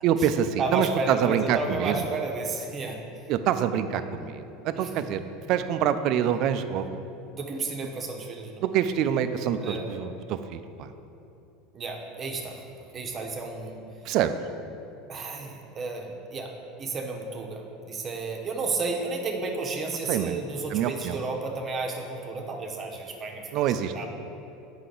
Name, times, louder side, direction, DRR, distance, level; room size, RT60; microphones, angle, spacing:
voice 1, 0.0-2.1 3.3-5.2 5.5-7.0 8.6-10.9 14.1-14.3 20.1-20.4 20.7-21.2 23.5-23.9, right 9 dB, 55° right, 10 dB, 0.4 m, -26 dB
voice 2, 0.6-3.0 4.7-4.9 7.3-8.6 9.6-9.9 11.7-12.6 12.9-13.8 15.1-16.5 16.8-24.1, right 3 dB, 30° right, 2 dB, 0.9 m, -32 dB
8.2 x 5.6 x 3.9 m, 2.8 s
supercardioid pair, 120°, 0 cm